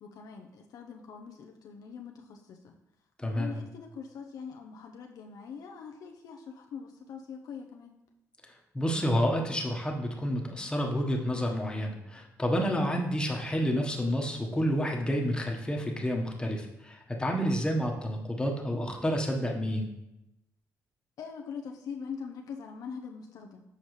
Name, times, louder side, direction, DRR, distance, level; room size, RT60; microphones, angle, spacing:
voice 1, 0.0-2.7 3.2-7.9 21.2-23.6, left 6 dB, 65° left, 2 dB, 0.6 m, -43 dB
voice 2, 3.2-3.5 8.4-19.9, equal, 15° left, 1 dB, 1.2 m, -29 dB
7.0 x 5.0 x 3.2 m, 0.89 s
supercardioid pair, 65°, 7 cm